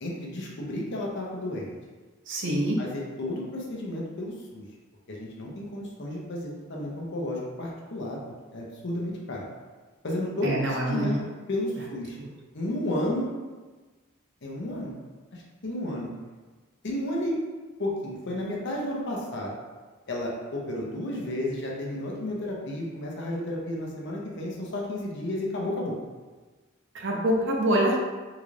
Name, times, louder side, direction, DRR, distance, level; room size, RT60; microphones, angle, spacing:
voice 1, 0.0-1.7 2.8-4.6 5.1-8.2 8.5-9.4 10.0-11.2 11.5-12.2 12.5-13.3 14.4-14.9 15.3-16.1 16.8-17.4 17.8-19.6 20.1-26.0, left 1 dB, 55° left, -3 dB, 0.8 m, -32 dB
voice 2, 2.3-2.8 10.4-11.2 12.2-12.3 26.9-28.0, right 1 dB, 60° right, -1 dB, 0.7 m, -25 dB
3.8 x 2.5 x 3.2 m, 1.3 s
head